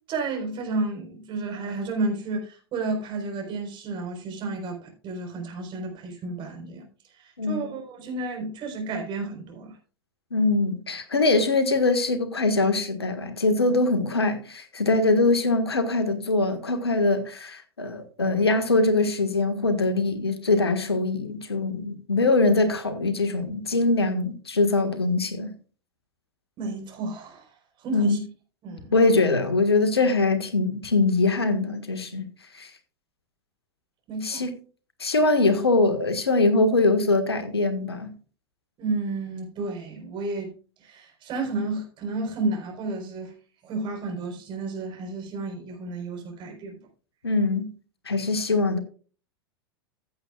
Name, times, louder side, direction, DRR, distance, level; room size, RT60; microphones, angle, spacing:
voice 1, 0.0-6.9 7.2-9.8 26.6-27.5 27.8-28.2 28.6-28.9 34.1-34.4 38.8-40.5 40.8-43.3 43.6-46.8, right 3 dB, 40° right, 4.2 m, -31 dB
voice 2, 7.4-7.7 10.3-25.5 27.9-28.3 28.9-32.2 32.5-32.7 34.2-34.5 35.0-38.1 47.2-47.7 48.0-48.8, left 3 dB, 85° left, 1.5 m, -23 dB
15.5 x 7.9 x 2.4 m
figure-of-eight pair, 90°, 13 cm